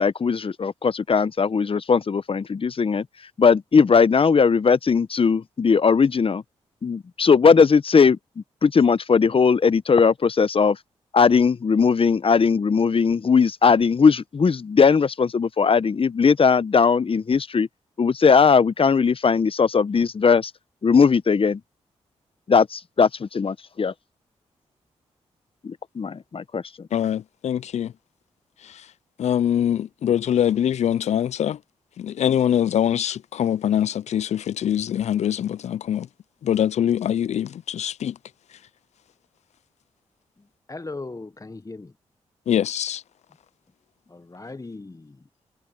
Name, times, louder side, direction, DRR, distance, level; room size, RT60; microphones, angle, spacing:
voice 1, 0.0-3.0 3.4-6.4 6.8-10.8 11.1-17.7 18.0-20.5 20.8-21.6 22.5-23.9 25.6-26.6, left 5 dB, 45° left, 0.9 m, -19 dB
voice 2, 26.9-27.9 28.6-28.9 29.2-31.6 32.0-36.1 36.4-38.2 42.5-43.0, left 10 dB, 60° left, 0.4 m, -23 dB
voice 3, 40.7-41.9 44.1-45.2, left 3 dB, 25° left, 1.2 m, -38 dB
supercardioid pair, 45°, 13 cm